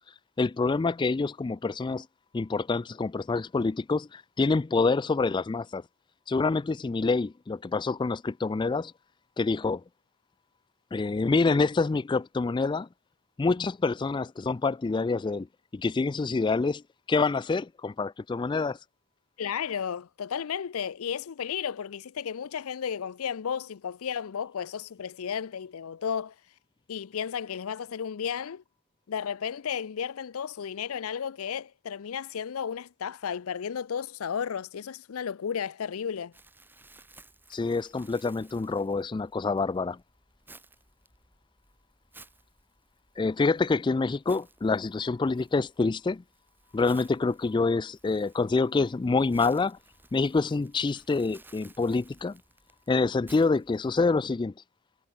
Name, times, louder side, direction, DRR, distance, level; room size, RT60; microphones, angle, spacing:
voice 1, 0.4-2.1 2.3-5.8 6.3-8.9 9.4-9.8 10.9-12.9 13.4-15.5 15.7-16.8 17.1-18.8 37.5-40.0 43.2-46.2 46.7-49.8 50.1-52.4 52.9-54.5, left 3 dB, 20° left, 0.3 m, -26 dB
voice 2, 19.4-26.3 26.9-28.6 29.1-36.3, left 7 dB, 80° left, 0.5 m, -33 dB
Crumpling crinkling, 36.3-54.0, right 2 dB, 10° right, 5.0 m, -57 dB
head